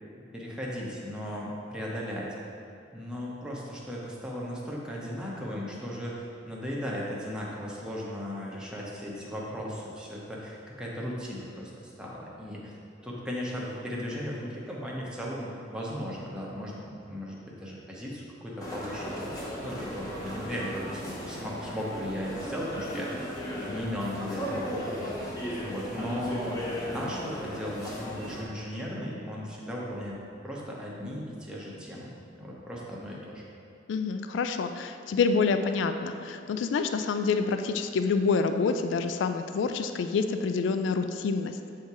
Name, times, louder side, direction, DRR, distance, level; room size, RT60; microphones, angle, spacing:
voice 1, 0.3-2.3 2.9-6.2 6.5-12.7 13.0-19.3 19.6-23.2 23.6-30.2 30.4-32.1 32.4-33.4, equal, 5° right, -5 dB, 0.8 m, -36 dB
sound 1, 18.6-28.4, equal, 20° left, 1.0 m, -36 dB
voice 2, 33.9-41.6, left 4 dB, 65° left, 9 dB, 0.3 m, -27 dB
7.8 x 2.8 x 4.7 m, 2.5 s
head